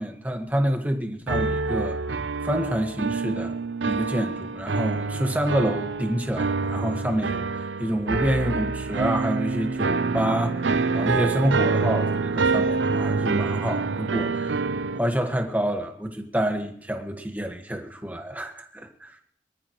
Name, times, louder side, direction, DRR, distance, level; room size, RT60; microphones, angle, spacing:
voice 1, 0.0-2.0 2.4-3.5 3.8-14.6 14.9-18.9, equal, 10° right, 4 dB, 1.5 m, -27 dB
sound 1, 1.3-15.0, right 4 dB, 85° right, 0.7 m, -26 dB
24.0 x 14.0 x 3.1 m, 0.67 s
head